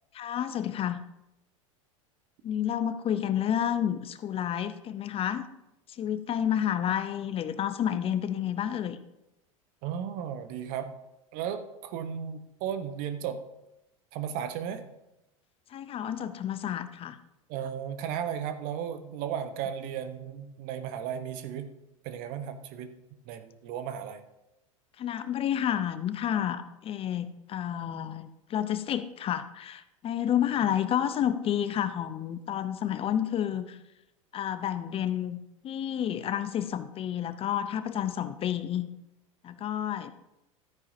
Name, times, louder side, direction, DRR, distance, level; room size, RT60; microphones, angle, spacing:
voice 1, 0.1-1.0 2.4-5.5 5.9-9.0 15.7-17.2 25.0-33.8 34.3-38.9 39.4-40.1, left 10 dB, 35° left, 12 dB, 0.7 m, -30 dB
voice 2, 9.8-10.9 11.3-13.4 14.1-14.9 17.5-21.7 22.0-22.9 23.3-24.2, right 8 dB, 55° right, 10 dB, 1.1 m, -35 dB
13.0 x 9.7 x 2.7 m, 0.90 s
hypercardioid pair, 90°, 17 cm